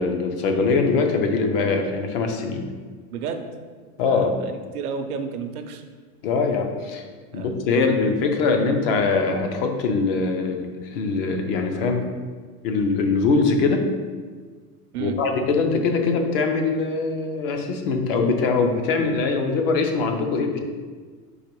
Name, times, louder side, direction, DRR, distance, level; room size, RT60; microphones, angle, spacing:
voice 1, 0.0-2.6 4.0-4.3 6.2-7.0 7.3-12.1 12.6-13.9 15.0-20.6, left 4 dB, 40° left, 4 dB, 0.5 m, -22 dB
voice 2, 3.1-3.5 4.1-5.8 7.3-7.5 14.9-15.1, right 6 dB, 70° right, 6 dB, 0.7 m, -31 dB
4.0 x 2.9 x 4.5 m, 1.5 s
supercardioid pair, 145°, 46 cm